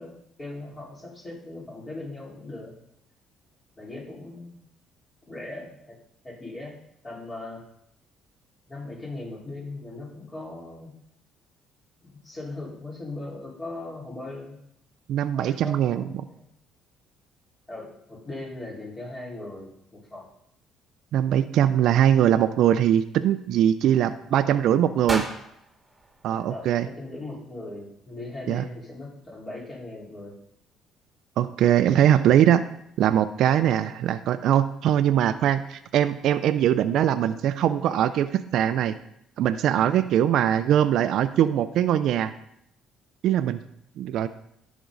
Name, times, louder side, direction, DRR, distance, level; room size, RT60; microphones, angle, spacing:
voice 1, 0.0-2.7 3.8-4.6 5.3-6.0 6.2-6.8 7.0-7.6 8.7-11.0 12.0-14.6 15.3-16.4 17.7-20.3 26.3-30.3, left 2 dB, 25° left, -4 dB, 4.6 m, -39 dB
voice 2, 15.1-16.0 21.1-25.2 26.2-26.9 28.5-28.6 31.4-32.6 33.0-39.0 39.4-42.3 43.2-43.6 44.0-44.3, right 10 dB, 70° right, 12 dB, 0.5 m, -21 dB
sound 1, 25.1-27.2, right 2 dB, 15° right, 2.1 m, -35 dB
14.0 x 6.1 x 4.0 m, 0.75 s
cardioid pair, 90°, 0 cm